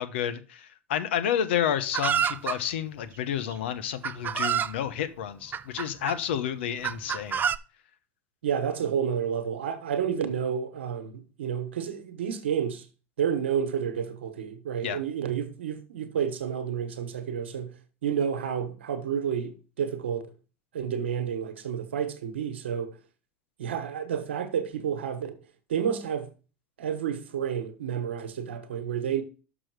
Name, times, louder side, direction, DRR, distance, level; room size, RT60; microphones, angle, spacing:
voice 1, 0.0-7.4 14.8-15.0, left 9 dB, 80° left, 0.9 m, -30 dB
Chicken rooster, 1.9-2.6 3.5-3.6 4.0-4.7 5.5-6.2 6.8-7.6, right 8 dB, 30° right, 0.5 m, -27 dB
voice 2, 8.4-12.8 13.2-17.7 18.0-20.3 20.7-22.9 23.6-25.3 25.7-26.3 26.8-29.2, right 8 dB, 85° right, 1.1 m, -30 dB
6.3 x 6.1 x 4.6 m
hypercardioid pair, 85°, 6 cm